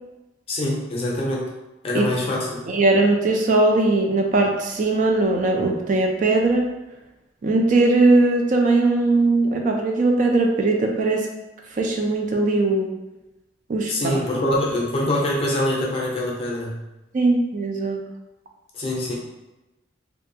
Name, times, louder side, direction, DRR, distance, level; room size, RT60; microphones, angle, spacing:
voice 1, 0.5-1.5 1.8-2.6 13.9-16.7 18.7-19.1, left 1 dB, 30° left, -3 dB, 0.5 m, -24 dB
voice 2, 2.7-6.7 7.4-11.2 11.8-12.9 13.7-14.1 17.1-18.0, right 2 dB, 45° right, 1 dB, 0.3 m, -19 dB
2.6 x 2.3 x 2.6 m, 1.0 s
head